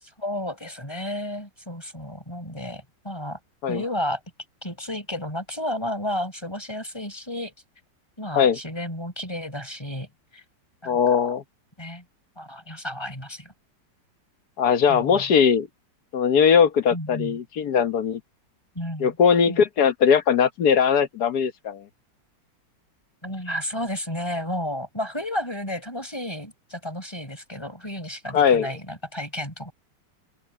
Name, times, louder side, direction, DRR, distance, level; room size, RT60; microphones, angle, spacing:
voice 1, 0.0-3.4 3.7-4.2 4.6-7.5 8.2-10.4 10.8-11.3 11.8-12.0 12.4-13.5 14.9-15.3 16.9-17.4 18.7-19.2 19.5-19.6 23.2-29.7, left 1 dB, 15° left, 5.9 m, -32 dB
voice 2, 10.9-11.4 14.6-15.7 16.1-18.2 19.0-21.8 28.3-28.7, left 7 dB, 65° left, 1.5 m, -20 dB
open air
omnidirectional pair, 1.9 m